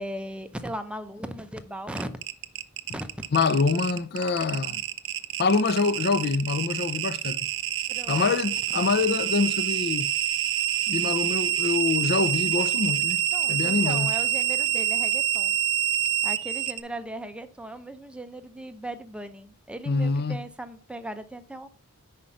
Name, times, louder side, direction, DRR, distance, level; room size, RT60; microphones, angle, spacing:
voice 1, 0.0-2.1 2.9-3.3 7.9-8.3 8.8-9.0 13.3-15.6 16.2-21.7, right 1 dB, 5° right, 0.5 m, -38 dB
sound 1, 1.9-16.8, right 11 dB, 60° right, 0.6 m, -27 dB
voice 2, 3.3-4.8 5.4-7.5 8.1-10.1 10.9-13.2 13.5-14.1 19.9-20.4, left 4 dB, 45° left, 0.5 m, -25 dB
5.6 x 5.1 x 5.7 m
head